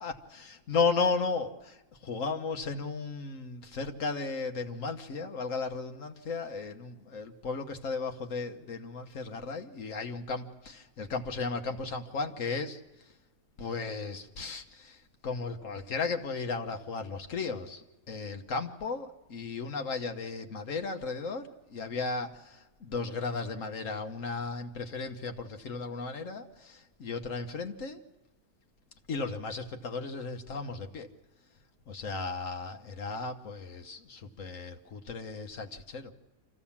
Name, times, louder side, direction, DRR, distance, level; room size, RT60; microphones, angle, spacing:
voice 1, 0.0-13.1 13.6-28.0 29.1-31.1 31.9-36.1, left 4 dB, 55° left, 1.4 m, -35 dB
26.0 x 15.0 x 7.2 m
omnidirectional pair, 1.7 m